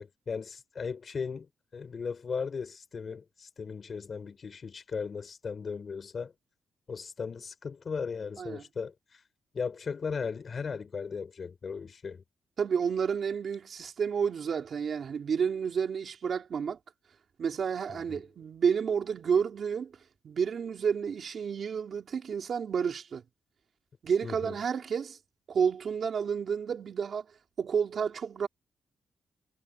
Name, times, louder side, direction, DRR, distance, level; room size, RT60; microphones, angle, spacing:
voice 1, 0.0-6.3 6.9-9.2 9.5-12.2 17.9-18.2 24.2-24.6, left 5 dB, 35° left, 5.2 m, -37 dB
voice 2, 12.6-16.8 17.4-19.9 20.2-23.2 24.0-25.2 25.5-27.3 27.6-28.5, right 6 dB, 45° right, 3.5 m, -30 dB
wide cardioid pair, 180°, 0 cm